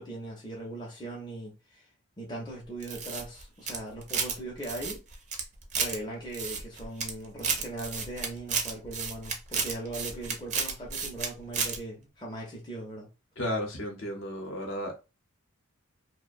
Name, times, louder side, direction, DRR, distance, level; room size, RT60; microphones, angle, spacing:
voice 1, 0.0-1.9 2.2-5.0 5.7-13.1, right 1 dB, 20° left, 0.5 m, -39 dB
sound 1, 2.8-4.4 4.6-6.0 6.3-7.1 7.4-11.3 11.5-11.8, right 5 dB, 35° right, 0.4 m, -32 dB
voice 2, 13.4-15.0, left 1 dB, 55° left, 0.7 m, -33 dB
2.4 x 2.1 x 2.5 m
head